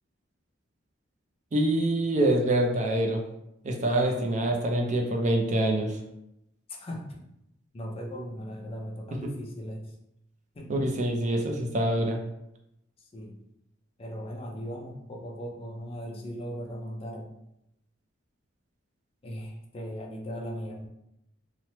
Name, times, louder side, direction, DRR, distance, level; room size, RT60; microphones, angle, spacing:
voice 1, 1.5-3.2 3.6-6.0 10.7-12.2, right 1 dB, 35° right, 1 dB, 0.4 m, -25 dB
voice 2, 6.7-7.3 7.7-9.9 10.5-10.9 13.0-13.4 14.0-17.3 19.2-20.9, equal, 30° left, 0 dB, 0.4 m, -38 dB
3.1 x 2.0 x 2.8 m, 0.84 s
head